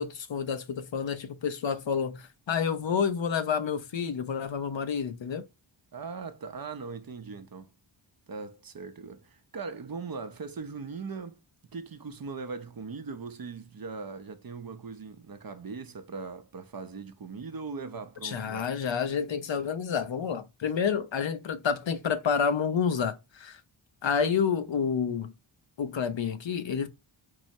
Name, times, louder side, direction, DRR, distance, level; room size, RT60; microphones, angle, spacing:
voice 1, 0.0-5.4 18.2-23.6 24.0-25.3 25.8-26.9, left 6 dB, 65° left, 0.7 m, -29 dB
voice 2, 5.9-7.7 8.3-11.4 11.7-18.7, right 4 dB, 45° right, 0.6 m, -40 dB
4.6 x 2.1 x 2.6 m
wide cardioid pair, 60°, 48 cm